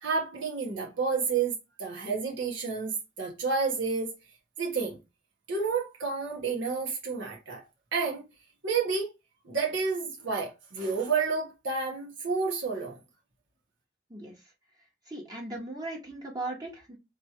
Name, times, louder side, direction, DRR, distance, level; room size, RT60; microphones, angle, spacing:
voice 1, 0.0-1.5 1.8-4.1 4.6-5.0 5.5-7.6 7.9-8.2 8.6-9.1 9.4-13.0, right 5 dB, 70° right, 1.3 m, -30 dB
voice 2, 15.1-17.0, right 2 dB, 20° right, 1.2 m, -38 dB
3.3 x 2.9 x 4.5 m
head